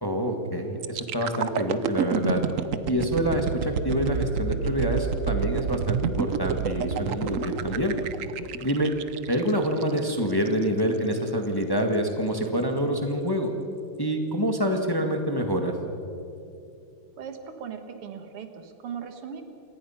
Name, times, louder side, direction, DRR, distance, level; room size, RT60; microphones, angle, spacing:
voice 1, 0.0-2.4 2.9-7.9 8.6-8.9 9.3-13.5 14.0-15.7, equal, 10° left, 3 dB, 1.5 m, -26 dB
sound 1, 0.8-10.6 11.1-11.3, right 7 dB, 70° right, 0.7 m, -29 dB
voice 2, 17.2-19.4, right 7 dB, 90° right, 7 dB, 2.5 m, -38 dB
28.0 x 18.5 x 5.8 m, 2.7 s
omnidirectional pair, 2.4 m